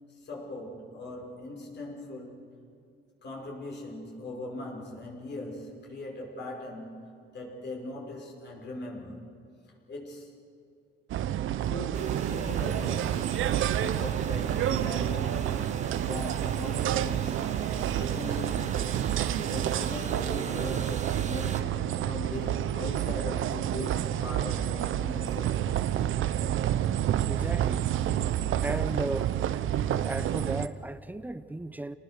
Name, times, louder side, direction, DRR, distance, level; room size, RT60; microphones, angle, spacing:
voice 1, 0.1-2.5 3.2-9.2 9.9-10.3 11.6-13.4 13.8-17.4 17.7-19.2 19.5-21.7 22.0-25.7, left 2 dB, 60° left, 5.8 m, -40 dB
sound 1, 11.1-30.7, right 11 dB, 80° right, 0.8 m, -29 dB
sound 2, 11.9-21.6, right 4 dB, 35° right, 1.6 m, -41 dB
voice 2, 27.3-27.8 28.6-29.4 29.9-32.0, right 1 dB, 10° right, 0.8 m, -35 dB
29.0 x 19.5 x 6.7 m
cardioid pair, 120°, 20 cm